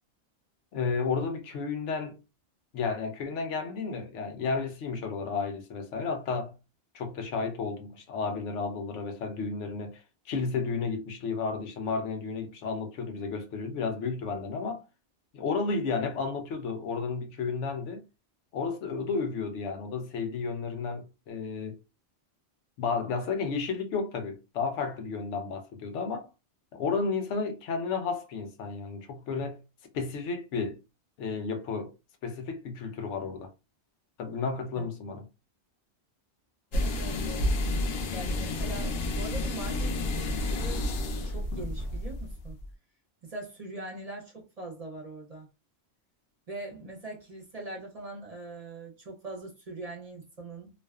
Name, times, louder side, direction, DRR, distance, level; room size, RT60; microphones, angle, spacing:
voice 1, 0.7-2.2 2.7-6.5 6.9-10.0 10.3-14.8 15.3-18.0 18.5-21.8 22.8-26.3 26.7-29.6 29.9-30.8 31.2-31.9 32.2-33.5 34.2-35.2, left 4 dB, 90° left, 1.0 m, -32 dB
sound 1, 36.7-42.7, left 1 dB, 65° left, 0.7 m, -30 dB
voice 2, 36.7-37.6 38.1-41.0 41.2-42.6 43.2-45.5 46.5-50.7, right 2 dB, 40° right, 0.6 m, -42 dB
2.5 x 2.3 x 2.3 m
omnidirectional pair, 1.2 m